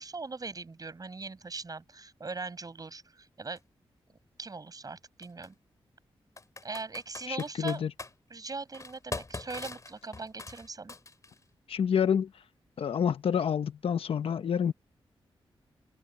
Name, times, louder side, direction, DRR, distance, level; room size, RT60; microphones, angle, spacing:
voice 1, 0.0-3.6 4.4-5.5 6.6-7.8 8.3-10.9, right 4 dB, 40° right, 6.7 m, -40 dB
Computer keyboard, 3.5-3.6 5.2-5.5 6.4-8.1 8.7-11.4, left 3 dB, 35° left, 3.1 m, -42 dB
voice 2, 7.3-7.9 11.7-12.3 12.8-14.7, left 8 dB, 75° left, 1.1 m, -28 dB
cardioid pair, 75°, 10 cm